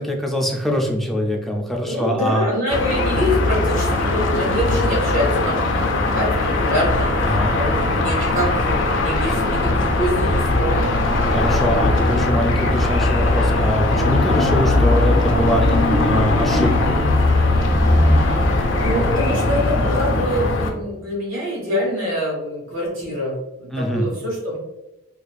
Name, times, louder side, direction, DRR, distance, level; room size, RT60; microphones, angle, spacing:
voice 1, 0.0-2.5 7.2-7.5 11.3-17.1 23.7-24.1, equal, ahead, 1 dB, 0.3 m, -23 dB
voice 2, 1.8-10.8 18.4-24.6, equal, 85° right, -3 dB, 1.3 m, -25 dB
sound 1, 2.7-20.7, left 2 dB, 65° left, 0.5 m, -19 dB
sound 2, 6.8-19.1, left 1 dB, 15° right, 1.1 m, -30 dB
sound 3, 15.3-20.5, right 1 dB, 40° right, 0.8 m, -35 dB
4.1 x 2.5 x 2.3 m, 0.98 s
head